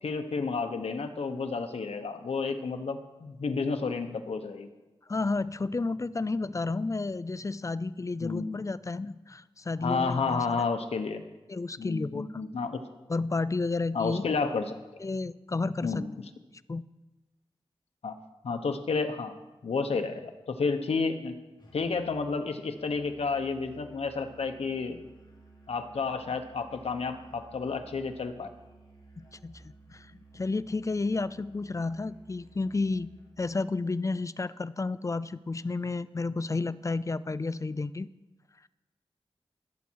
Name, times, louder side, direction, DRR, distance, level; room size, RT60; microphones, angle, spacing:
voice 1, 0.0-4.7 8.2-8.6 9.8-11.2 11.8-12.8 13.9-14.8 15.8-16.1 18.0-18.2 18.4-19.3 19.6-21.3 21.7-25.0 25.7-28.5, left 4 dB, 85° left, 7 dB, 1.1 m, -31 dB
voice 2, 5.1-10.6 11.5-12.4 13.1-14.2 15.0-16.0 16.7-16.8 29.2-30.1 30.3-33.1 33.4-38.1, left 3 dB, 30° left, 16 dB, 0.4 m, -31 dB
Musical instrument, 21.6-33.4, right 2 dB, 45° left, 3.3 m, -55 dB
20.0 x 8.5 x 4.7 m, 1.1 s
wide cardioid pair, 75°, 10 cm